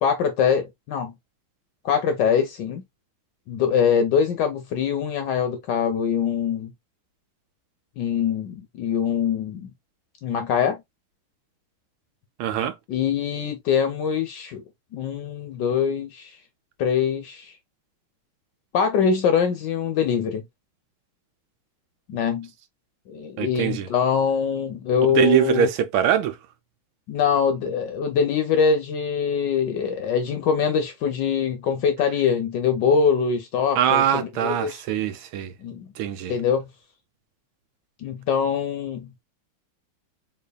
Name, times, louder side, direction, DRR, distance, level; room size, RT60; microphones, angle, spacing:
voice 1, 0.0-1.1 1.8-2.8 3.5-6.7 8.0-9.7 10.2-10.8 12.9-14.6 14.9-16.4 16.8-17.5 18.7-20.4 22.1-22.5 23.1-25.7 27.1-34.8 35.6-35.9 36.3-36.7 38.0-39.1, left 7 dB, 70° left, 1.1 m, -23 dB
voice 2, 12.4-12.7 23.4-23.9 25.1-26.4 33.8-35.5 36.0-36.4, right 10 dB, 75° right, 1.3 m, -22 dB
4.0 x 3.2 x 2.2 m
omnidirectional pair, 2.4 m